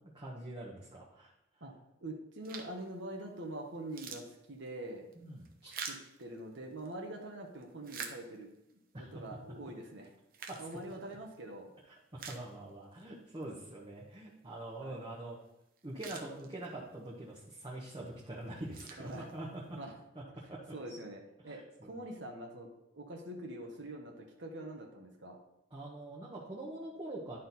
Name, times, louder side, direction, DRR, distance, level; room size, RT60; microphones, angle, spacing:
voice 1, 0.1-1.3 5.1-5.7 8.9-9.1 10.5-10.7 11.9-15.4 15.8-19.8 20.1-20.2 20.5-21.0 21.4-21.9 25.7-27.4, right 1 dB, 25° right, -5 dB, 1.1 m, -44 dB
voice 2, 2.0-5.1 5.9-8.5 8.9-10.1 10.6-11.7 14.8-15.0 19.0-19.3 19.7-19.9 20.3-20.4 20.7-22.7 22.9-25.4, right 1 dB, 70° right, 1 dB, 1.1 m, -44 dB
sound 1, 2.4-2.9 3.4-3.5 3.8-6.9 7.5-8.7 9.3-9.4 10.0-11.4 11.8-11.9 12.2-13.0 13.4-13.5 15.5-15.6 15.8-16.9 17.5-17.9 18.4-19.7, right 6 dB, 50° right, 0.9 m, -47 dB
11.0 x 4.4 x 4.1 m, 0.84 s
head